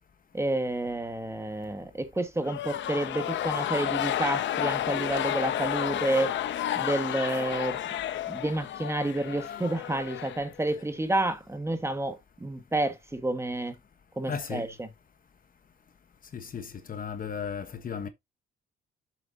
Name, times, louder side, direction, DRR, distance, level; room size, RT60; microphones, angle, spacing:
voice 1, 0.3-6.3 6.8-7.8 8.3-13.7 14.2-14.9, right 2 dB, 15° right, 1.6 m, -30 dB
sound 1, 2.4-10.9, left 11 dB, 70° left, 0.8 m, -31 dB
voice 2, 14.3-14.7 16.3-18.1, left 6 dB, 45° left, 1.2 m, -36 dB
7.7 x 6.9 x 2.7 m
cardioid pair, 90°, 20 cm